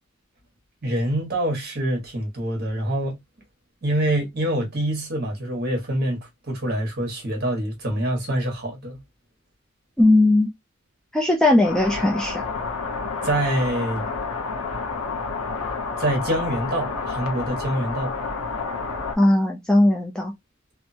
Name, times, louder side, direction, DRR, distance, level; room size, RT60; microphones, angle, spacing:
voice 1, 0.8-3.1 3.8-6.2 6.5-9.0 13.2-14.1 16.0-18.1, right 1 dB, 50° right, 1.4 m, -25 dB
voice 2, 10.0-10.5 11.1-12.4 19.2-20.3, left 1 dB, 5° left, 0.4 m, -18 dB
sound 1, 11.6-19.1, left 4 dB, 90° left, 0.7 m, -29 dB
3.5 x 2.0 x 2.7 m
head